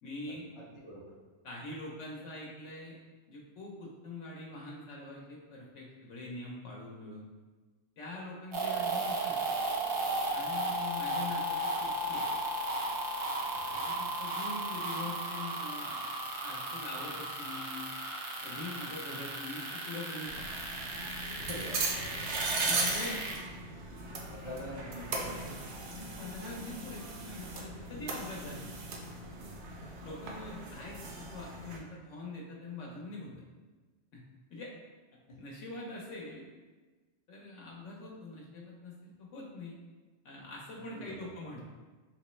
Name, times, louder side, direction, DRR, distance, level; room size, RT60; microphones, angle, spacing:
voice 1, 0.0-0.5 1.4-3.0 3.3-7.3 8.0-9.4 10.3-12.3 13.8-16.1 16.4-17.9 18.4-20.5 22.6-23.3 25.8-28.8 30.0-33.4 34.1-34.2 34.5-34.7 35.4-36.5 37.3-39.8 40.2-41.6, left 2 dB, 85° left, -3 dB, 1.0 m, -44 dB
voice 2, 0.6-1.1 13.6-13.8 21.4-21.9 24.3-25.7 30.4-30.5 35.3-35.4 40.8-41.3, equal, 45° left, -3 dB, 0.4 m, -45 dB
sound 1, 8.5-23.3, right 2 dB, 55° right, 0.3 m, -35 dB
sound 2, 20.2-31.8, right 3 dB, 75° right, 0.9 m, -38 dB
3.5 x 3.0 x 3.0 m, 1.3 s
omnidirectional pair, 1.2 m